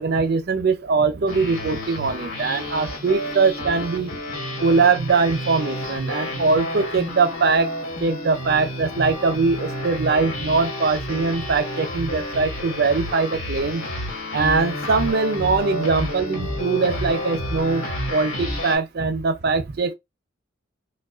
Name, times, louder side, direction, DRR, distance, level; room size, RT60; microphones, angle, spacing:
voice 1, 0.0-4.1 4.6-7.7 8.0-13.8 14.3-17.8 18.1-19.9, right 4 dB, 50° right, 0.4 m, -21 dB
sound 1, 1.3-18.8, left 1 dB, 85° left, 1.4 m, -30 dB
4.6 x 2.2 x 2.4 m
head